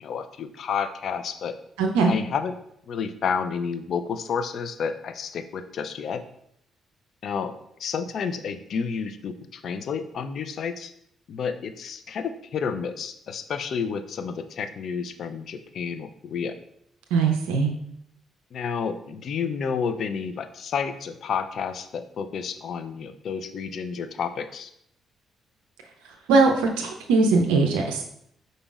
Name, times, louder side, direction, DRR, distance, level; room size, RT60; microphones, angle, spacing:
voice 1, 0.0-1.6 2.1-2.5 2.9-6.2 7.2-10.9 11.3-16.6 18.5-24.7, left 6 dB, 60° left, 10 dB, 0.3 m, -30 dB
voice 2, 1.8-2.1 17.1-17.7 26.3-28.0, right 4 dB, 80° right, 2 dB, 0.4 m, -20 dB
5.1 x 3.9 x 2.4 m, 0.73 s
hypercardioid pair, 45°, 0 cm